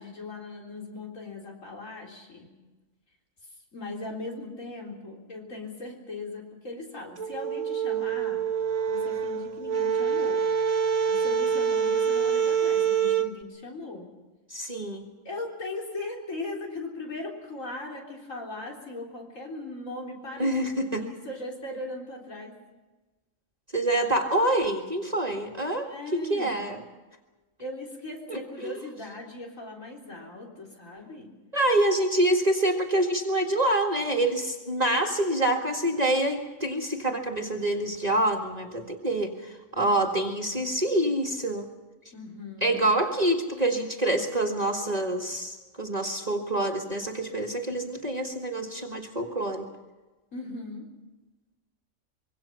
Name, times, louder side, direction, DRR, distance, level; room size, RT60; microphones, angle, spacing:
voice 1, 0.0-2.5 3.7-8.4 8.9-10.4 11.1-14.1 15.2-22.5 25.8-26.6 27.6-31.3 33.5-33.6 39.8-40.2 42.1-42.8 50.3-50.8, left 2 dB, 85° left, -1 dB, 4.2 m, -39 dB
sound 1, 7.2-13.3, right 7 dB, 85° right, 1.7 m, -26 dB
voice 2, 14.5-15.1 20.4-21.0 23.7-26.8 28.3-28.7 31.5-41.7 42.6-49.7, right 1 dB, 30° right, 1 dB, 2.0 m, -26 dB
25.5 x 23.5 x 5.8 m, 1.2 s
omnidirectional pair, 1.3 m